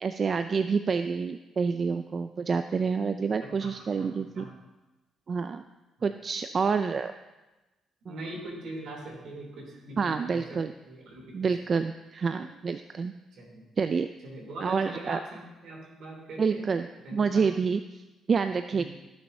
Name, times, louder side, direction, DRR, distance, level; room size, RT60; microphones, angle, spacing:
voice 1, 0.0-4.5 5.3-5.6 6.0-7.1 8.1-8.2 10.0-10.7 11.3-13.1 13.8-14.1 14.6-15.2 16.4-18.0 18.3-18.8, right 5 dB, 45° right, 9 dB, 0.3 m, -28 dB
voice 2, 3.4-3.7 4.0-4.1 4.4-4.5 8.0-10.6 10.8-11.5 12.3-12.4 13.3-13.6 14.2-16.6 17.0-17.5 18.7-18.9, right 1 dB, 75° right, -1 dB, 3.0 m, -42 dB
14.5 x 6.4 x 2.7 m, 1.1 s
cardioid pair, 90°, 0 cm